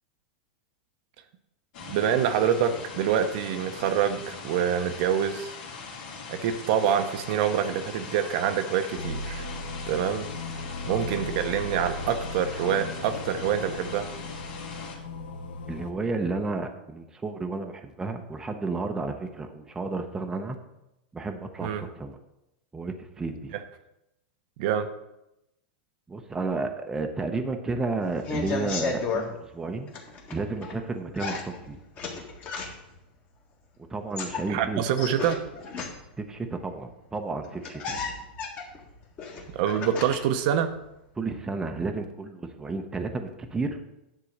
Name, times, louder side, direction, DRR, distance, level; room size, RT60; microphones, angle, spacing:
sound 1, 1.7-15.0, left 4 dB, 65° left, 2.4 m, -40 dB
voice 1, 1.9-5.6 6.3-9.5 9.9-10.3 10.9-14.1 21.6-21.9 23.5-23.6 24.6-24.9 34.5-35.4 39.5-40.7, right 9 dB, 55° right, 8 dB, 0.7 m, -26 dB
sound 2, 9.0-15.9, left 2 dB, 85° left, 1.0 m, -37 dB
voice 2, 15.7-20.6 21.1-22.2 22.7-23.5 26.1-29.9 30.3-31.8 33.9-34.8 36.2-37.8 41.2-43.8, right 3 dB, 10° right, 4 dB, 0.7 m, -32 dB
sound 3, 28.0-29.3 29.9-30.8 31.2-33.0 33.9-36.2 37.1-37.2 37.4-40.4 40.7-41.4, left 4 dB, 30° left, 1.6 m, -34 dB
9.8 x 3.7 x 6.5 m, 0.89 s
supercardioid pair, 145°, 5 cm